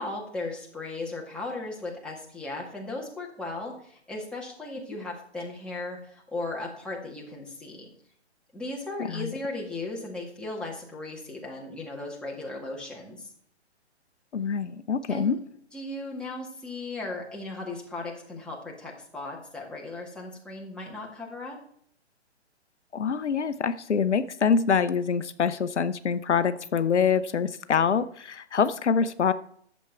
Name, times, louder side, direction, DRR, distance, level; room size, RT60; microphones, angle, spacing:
voice 1, 0.0-7.9 8.5-13.3 15.1-15.4 15.7-21.6, left 2 dB, 5° left, -3 dB, 1.9 m, -36 dB
voice 2, 14.3-15.4 22.9-29.3, left 6 dB, 80° left, 13 dB, 0.7 m, -25 dB
11.0 x 7.3 x 4.5 m, 0.64 s
figure-of-eight pair, 135°, 34 cm